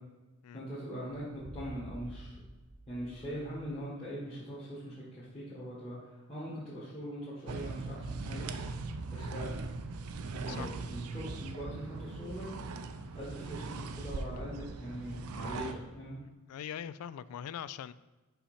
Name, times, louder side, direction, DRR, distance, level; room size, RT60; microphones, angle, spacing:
voice 1, 0.5-2.4 2.9-8.5 9.1-9.6 10.3-12.5 13.1-16.2, equal, 25° left, -10 dB, 1.6 m, -42 dB
sound 1, 1.1-3.9, right 1 dB, 55° right, 0.9 m, -50 dB
sound 2, 7.5-15.7, right 3 dB, 80° right, 0.5 m, -40 dB
voice 2, 16.5-17.9, left 9 dB, 85° left, 16 dB, 0.3 m, -42 dB
5.6 x 5.6 x 4.3 m, 1.2 s
head